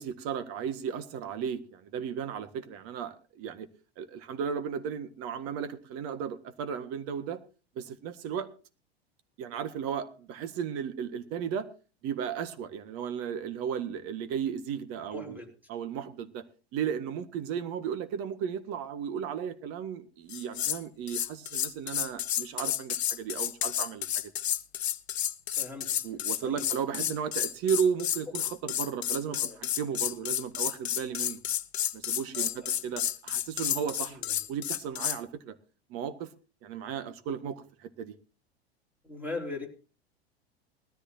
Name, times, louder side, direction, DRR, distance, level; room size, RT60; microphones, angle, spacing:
voice 1, 0.0-3.7 4.0-7.4 7.8-8.5 9.4-11.7 12.0-15.4 15.7-16.4 16.7-24.3 26.0-31.4 31.9-34.2 34.5-35.6 35.9-36.3 36.6-38.1, right 7 dB, 45° right, 11 dB, 1.7 m, -35 dB
voice 2, 15.1-15.5 25.6-26.0 26.4-26.7 27.0-27.1 29.4-29.6 32.3-32.7 34.1-34.4 39.0-39.7, left 3 dB, 5° right, 3 dB, 4.4 m, -40 dB
sound 1, 20.3-20.8 21.1-35.2, left 11 dB, 80° left, 0.8 m, -31 dB
20.0 x 13.5 x 2.8 m, 0.35 s
hypercardioid pair, 90°, 32 cm